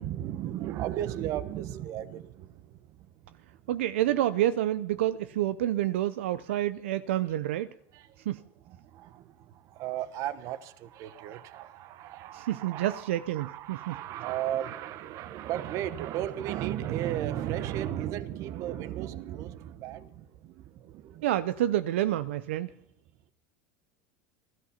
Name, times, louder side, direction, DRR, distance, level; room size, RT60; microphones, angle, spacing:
voice 1, 0.0-3.7 6.5-6.6 7.9-8.3 8.6-21.2, right 12 dB, 55° right, 1.1 m, -35 dB
voice 2, 3.7-7.7 8.3-8.4 12.3-13.9 21.2-22.7, right 13 dB, 85° right, 0.5 m, -28 dB
18.0 x 13.0 x 5.8 m
supercardioid pair, 100°, 6 cm